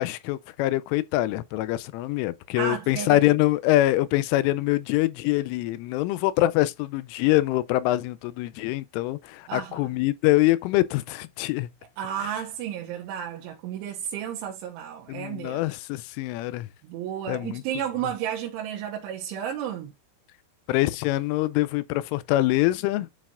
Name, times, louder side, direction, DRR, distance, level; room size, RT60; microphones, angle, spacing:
voice 1, 0.0-11.7 15.1-16.7 17.3-17.6 20.7-23.1, left 16 dB, 90° left, 3.1 m, -24 dB
voice 2, 2.6-3.3 9.5-9.9 12.0-15.6 16.8-19.9, right 9 dB, 80° right, 3.4 m, -32 dB
11.5 x 4.2 x 2.5 m
omnidirectional pair, 5.5 m